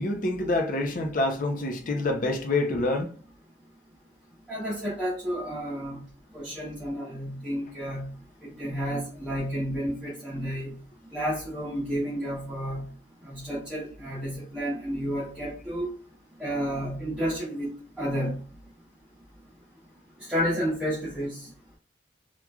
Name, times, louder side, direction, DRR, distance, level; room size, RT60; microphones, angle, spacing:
voice 1, 0.0-3.1, left 2 dB, 50° left, 0.5 m, -27 dB
voice 2, 4.5-6.0 6.3-8.1 8.4-10.7 11.1-12.8 13.2-15.9 16.4-17.7 18.0-18.4 20.3-21.5, equal, 5° right, 0.8 m, -31 dB
3.0 x 2.4 x 2.3 m
head